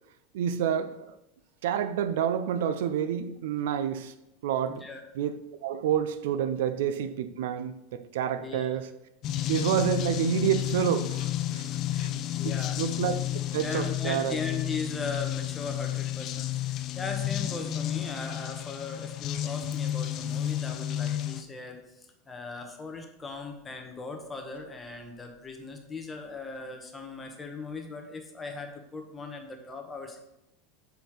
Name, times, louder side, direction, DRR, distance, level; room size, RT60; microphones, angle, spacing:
voice 1, 0.3-1.2 1.6-4.1 4.4-4.9 5.2-8.9 9.5-11.6 11.9-13.1 13.5-14.4, right 9 dB, 80° right, 0.5 m, -29 dB
voice 2, 4.7-5.0 8.4-8.8 12.4-12.8 13.6-30.2, left 4 dB, 10° left, 0.9 m, -38 dB
sound 1, 9.2-21.4, left 12 dB, 35° left, 0.4 m, -31 dB
5.2 x 4.6 x 5.8 m
supercardioid pair, 160°, 0 cm